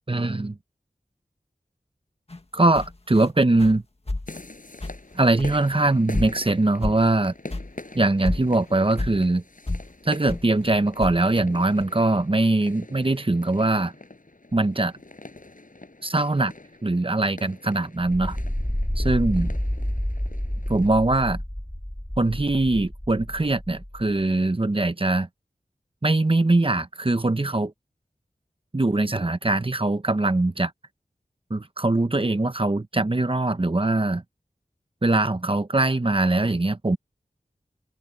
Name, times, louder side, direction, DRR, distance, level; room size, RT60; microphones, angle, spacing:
voice 1, 0.1-0.6 2.5-3.8 5.1-7.3 7.9-9.4 10.0-13.9 14.5-14.9 16.0-16.5 16.8-18.4 19.0-19.5 20.7-21.4 22.2-25.3 26.0-27.7 28.7-30.7 31.5-34.2 35.0-37.0, right 2 dB, 35° right, 1.1 m, -22 dB
sound 1, 2.3-2.4 2.7-3.3 3.6-3.8 4.1-4.4 4.8-5.1 5.4-5.8 6.1-6.5 6.8-7.2 7.5-7.7 8.0-8.1 8.2-9.2 9.7-9.9 10.3-10.5 11.0-11.4 11.8-11.9, left 2 dB, 40° left, 1.7 m, -30 dB
sound 2, 4.3-20.9, left 2 dB, 60° left, 7.2 m, -44 dB
sound 3, 18.0-24.0, equal, 10° left, 2.7 m, -29 dB
open air
wide cardioid pair, 45°, 16 cm